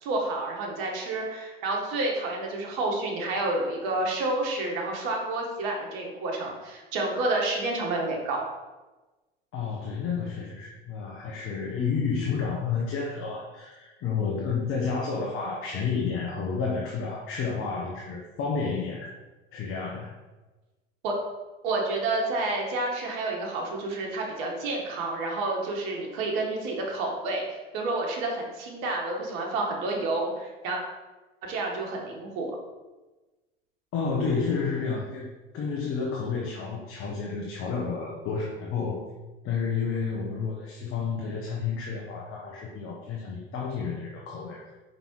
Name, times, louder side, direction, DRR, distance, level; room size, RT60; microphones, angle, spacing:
voice 1, 0.0-8.5 21.0-21.2 21.6-30.8 31.4-32.6, right 2 dB, 65° right, 0 dB, 1.7 m, -29 dB
voice 2, 9.5-19.1 19.5-20.1 33.9-39.0 39.4-44.7, left 5 dB, 45° left, -2 dB, 1.1 m, -30 dB
5.3 x 4.1 x 4.6 m, 1.2 s
hypercardioid pair, 75°, 29 cm